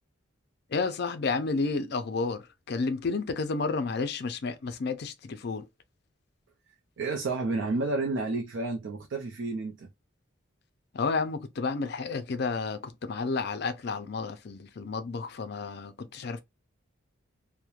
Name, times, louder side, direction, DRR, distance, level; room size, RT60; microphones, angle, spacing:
voice 1, 0.7-5.7 10.9-16.4, left 4 dB, 50° left, 0.4 m, -31 dB
voice 2, 7.0-9.9, right 3 dB, 60° right, 0.4 m, -30 dB
3.0 x 2.1 x 2.4 m
head